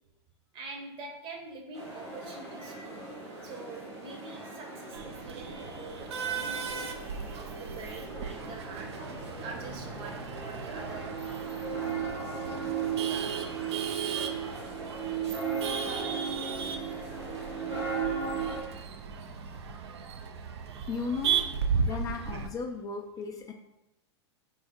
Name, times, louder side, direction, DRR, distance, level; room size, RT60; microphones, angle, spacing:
voice 1, 0.5-3.0 3.4-6.9 7.3-8.9 9.4-11.3, right 3 dB, 40° right, 2 dB, 0.8 m, -45 dB
sound 1, 1.7-18.6, right 5 dB, 85° right, 1.2 m, -37 dB
Male speech man speaking / Laughter / Chatter, 4.9-22.5, right 6 dB, 70° right, 0.4 m, -36 dB
voice 2, 20.9-21.4 21.9-23.5, left 5 dB, 25° left, 3 dB, 0.4 m, -35 dB
3.8 x 2.0 x 3.6 m, 0.93 s
hypercardioid pair, 95°, 14 cm